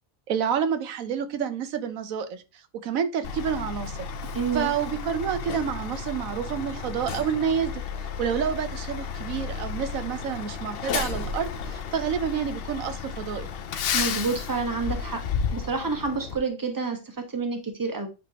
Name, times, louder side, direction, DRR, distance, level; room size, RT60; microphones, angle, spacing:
voice 1, 0.3-2.4 2.8-4.1 4.5-7.8 8.2-13.5, right 7 dB, 80° right, 1.2 m, -28 dB
Truck, 3.2-16.4, left 6 dB, 60° left, 0.6 m, -33 dB
voice 2, 4.3-4.7 13.9-15.2 15.5-18.1, right 4 dB, 15° right, 1.1 m, -28 dB
9.8 x 3.4 x 2.9 m
omnidirectional pair, 1.4 m